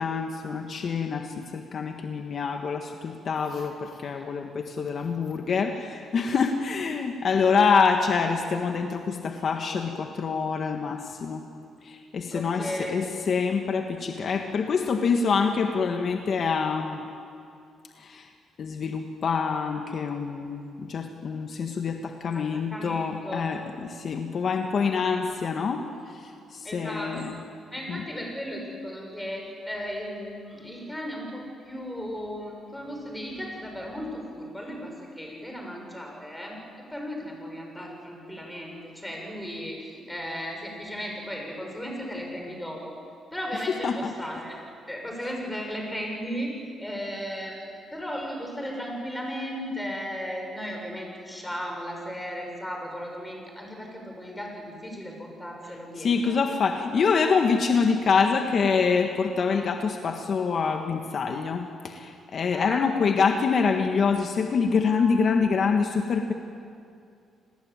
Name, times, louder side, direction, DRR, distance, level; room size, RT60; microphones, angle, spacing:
voice 1, 0.0-11.4 11.8-17.0 18.0-18.3 18.6-25.8 26.1-27.4 27.9-28.0 43.8-44.1 55.6-66.3, left 5 dB, 55° left, 5 dB, 1.6 m, -26 dB
voice 2, 12.3-13.0 22.3-22.4 22.7-23.5 26.6-27.2 27.7-38.8 39.0-43.0 43.3-44.6 44.9-56.4 62.5-62.9, equal, 10° left, 1 dB, 7.3 m, -36 dB
29.0 x 19.5 x 9.0 m, 2.4 s
cardioid pair, 90°, 0 cm